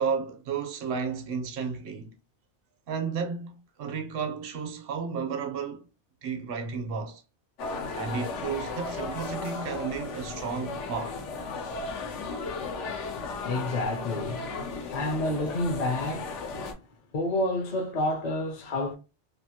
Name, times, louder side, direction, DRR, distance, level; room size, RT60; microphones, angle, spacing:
voice 1, 0.0-2.1 2.9-5.8 6.2-7.2 7.9-11.2, right 6 dB, 60° right, 0.8 m, -32 dB
sound 1, 7.6-16.7, left 3 dB, 85° left, 1.0 m, -35 dB
voice 2, 13.4-14.5 14.9-16.5 17.1-18.9, left 1 dB, 50° left, 0.5 m, -29 dB
2.7 x 2.5 x 2.8 m
omnidirectional pair, 1.2 m